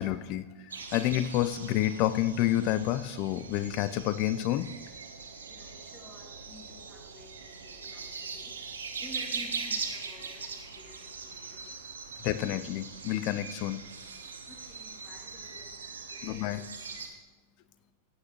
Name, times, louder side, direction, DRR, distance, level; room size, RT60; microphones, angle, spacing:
voice 1, 0.0-4.7 12.2-13.8 16.2-16.6, left 13 dB, 40° left, 14 dB, 0.6 m, -29 dB
sound 1, 0.7-17.1, right 5 dB, 70° right, 1.3 m, -41 dB
voice 2, 5.1-12.3 14.1-17.9, left 1 dB, 15° left, -1 dB, 2.9 m, -54 dB
16.0 x 9.2 x 3.2 m, 1.1 s
figure-of-eight pair, 90°, 0 cm